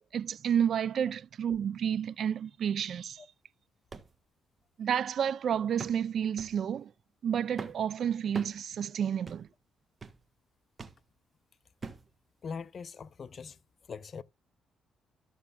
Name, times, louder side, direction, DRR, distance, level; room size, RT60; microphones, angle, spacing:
voice 1, 0.1-3.2 4.8-6.9 7.2-9.5, right 8 dB, 60° right, 0.4 m, -30 dB
sound 1, 3.9-4.1 4.6-4.7 5.8-6.1 6.4-6.6 7.6-7.9 8.4-8.6 9.3-9.5 10.0-10.2 10.8-11.0 11.8-12.1 12.8-12.9, right 4 dB, 30° right, 1.3 m, -42 dB
voice 2, 12.4-13.6 13.9-14.2, left 5 dB, 45° left, 0.5 m, -41 dB
13.5 x 6.4 x 2.3 m
cardioid pair, 90°, 0 cm